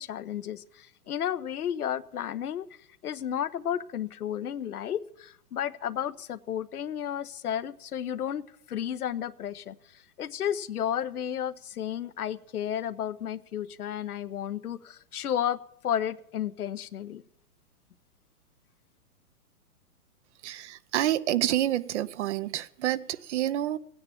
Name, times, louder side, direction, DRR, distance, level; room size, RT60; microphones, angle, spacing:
voice 1, 0.0-2.7 3.0-17.2, left 10 dB, 75° left, 1.0 m, -32 dB
voice 2, 20.4-23.8, right 13 dB, 50° right, 0.8 m, -28 dB
16.5 x 9.6 x 8.8 m
hypercardioid pair, 120°, 45 cm